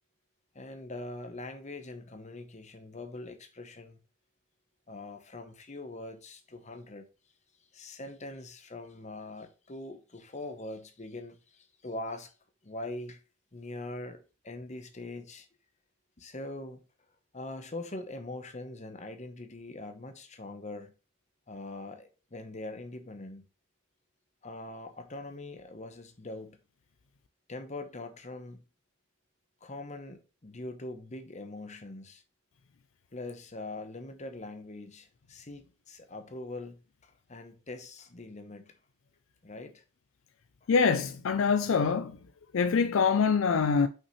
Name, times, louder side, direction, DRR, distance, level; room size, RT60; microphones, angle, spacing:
voice 1, 0.5-4.0 4.9-7.1 7.7-12.3 12.6-13.2 13.5-15.5 16.2-16.8 17.3-20.9 21.5-23.5 24.4-26.6 27.5-28.6 29.6-32.2 33.1-38.7 39.4-39.8 40.6-40.7, left 2 dB, 30° left, 0.9 m, -42 dB
voice 2, 40.7-42.2 42.5-43.9, left 5 dB, 60° left, 0.4 m, -25 dB
5.6 x 5.6 x 3.1 m
head